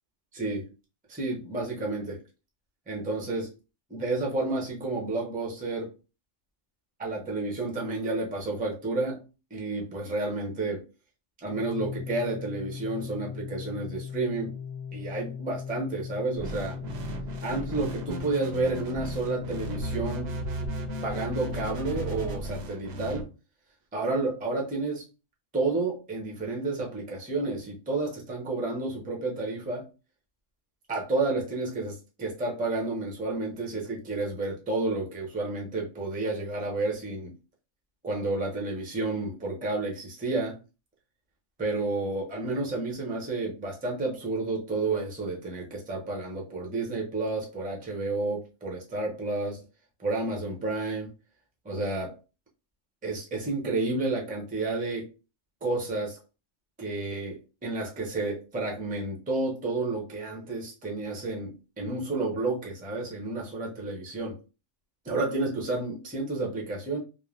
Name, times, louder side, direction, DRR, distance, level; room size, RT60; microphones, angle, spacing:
voice 1, 0.3-0.7 1.1-2.2 2.9-3.5 3.9-5.9 7.0-9.2 9.5-10.8 11.4-14.5 14.9-16.8 17.4-20.4 21.0-23.3 23.9-25.1 25.5-29.9 30.9-37.3 38.0-40.6 41.6-49.6 50.0-51.1 51.6-52.1 53.0-55.1 55.6-56.2 56.8-64.4 65.0-67.0, right 2 dB, 10° right, 0.5 m, -31 dB
Organ, 11.5-22.4, left 7 dB, 80° left, 0.9 m, -39 dB
sound 1, 16.4-23.2, right 2 dB, 65° right, 0.7 m, -36 dB
3.2 x 2.0 x 2.4 m
omnidirectional pair, 1.3 m